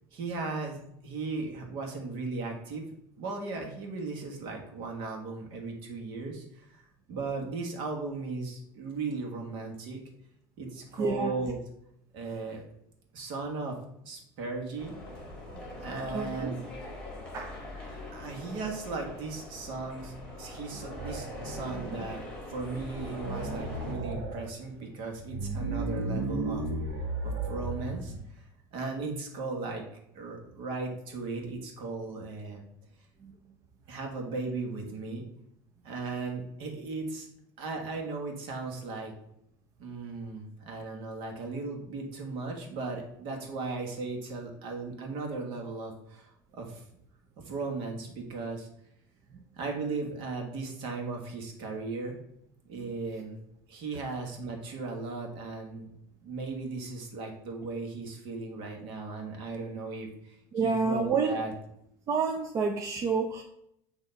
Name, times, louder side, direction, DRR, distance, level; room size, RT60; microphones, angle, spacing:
voice 1, 0.1-2.8 3.2-6.8 7.1-10.0 10.6-11.6 12.1-12.6 13.1-13.8 14.0-14.9 15.8-16.6 18.1-26.7 27.2-28.4 28.7-29.8 30.1-32.6 33.9-35.2 35.8-37.3 37.6-39.1 39.8-46.8 47.4-48.7 49.6-52.1 52.7-53.4 53.7-55.9 56.2-61.5, right 3 dB, 60° right, 1 dB, 1.5 m, -37 dB
voice 2, 11.0-11.3 16.1-16.5 17.3-17.6 33.2-33.3 60.5-61.4 62.1-63.4, right 4 dB, 30° right, 3 dB, 0.5 m, -28 dB
sound 1, 14.8-24.0, left 1 dB, 10° left, 1.8 m, -43 dB
sound 2, 20.7-22.2 22.6-22.7 22.9-24.5 25.1-28.2, right 2 dB, 85° right, 1.4 m, -35 dB
6.5 x 2.9 x 5.2 m, 0.76 s
cardioid pair, 150°, 10 cm